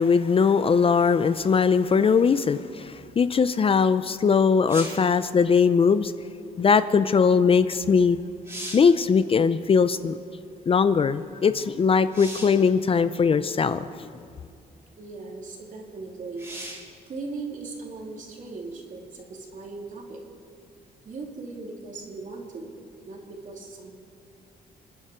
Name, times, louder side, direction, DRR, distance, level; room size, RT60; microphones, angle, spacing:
voice 1, 0.0-6.1 6.6-8.2 8.7-10.1 10.7-14.1, left 5 dB, 35° left, 0.5 m, -20 dB
sound 1, 4.7-5.1 7.8-7.9 8.3-9.0 12.1-12.7 13.7-13.8 16.4-16.9 20.5-20.6, right 1 dB, 15° right, 4.0 m, -38 dB
voice 2, 15.0-16.5 16.8-20.2 21.0-22.7 23.1-23.9, right 3 dB, 50° right, 3.1 m, -38 dB
26.5 x 10.0 x 5.0 m
cardioid pair, 110°, 17 cm